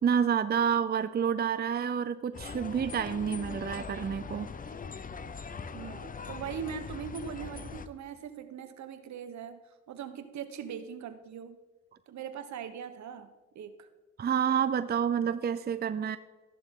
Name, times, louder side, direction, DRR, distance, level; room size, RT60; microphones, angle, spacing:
voice 1, 0.0-4.5 14.2-16.2, right 7 dB, 35° right, 12 dB, 0.6 m, -29 dB
sound 1, 2.3-7.9, left 5 dB, 30° left, 0.7 m, -41 dB
voice 2, 5.7-11.6 12.1-13.9, right 7 dB, 65° right, 10 dB, 1.2 m, -41 dB
14.0 x 11.0 x 3.8 m, 1.2 s
cardioid pair, 90°, 30 cm